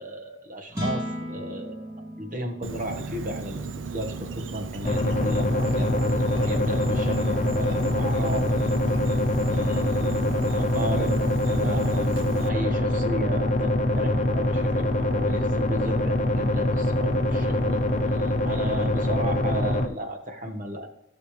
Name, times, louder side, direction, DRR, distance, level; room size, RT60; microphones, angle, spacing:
voice 1, 0.0-8.7 9.5-20.9, equal, 45° right, 4 dB, 1.3 m, -34 dB
sound 1, 0.7-7.1, equal, 15° right, 2.6 m, -38 dB
Insect, 2.6-12.5, right 4 dB, 85° right, 0.6 m, -35 dB
sound 2, 4.8-19.9, left 1 dB, 40° left, 0.8 m, -24 dB
15.0 x 6.6 x 3.3 m, 0.86 s
head